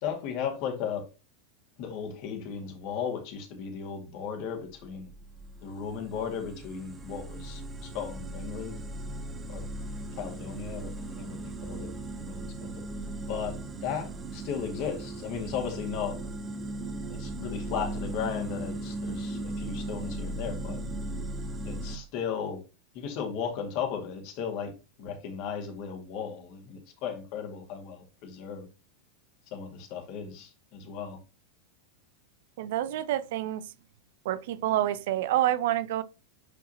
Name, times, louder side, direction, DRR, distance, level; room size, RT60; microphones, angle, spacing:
voice 1, 0.0-1.0 1.8-5.1 5.6-8.8 9.5-9.6 10.2-11.9 12.2-12.8 13.3-16.2 17.1-20.8 21.6-22.6 22.9-24.7 25.0-28.7 29.5-31.2, left 7 dB, 45° left, 2.2 m, -36 dB
sound 1, 4.7-22.0, right 1 dB, 20° right, 1.0 m, -37 dB
voice 2, 32.6-33.6 34.2-36.0, right 13 dB, 55° right, 0.5 m, -28 dB
10.5 x 4.6 x 2.9 m
figure-of-eight pair, 90°, 0 cm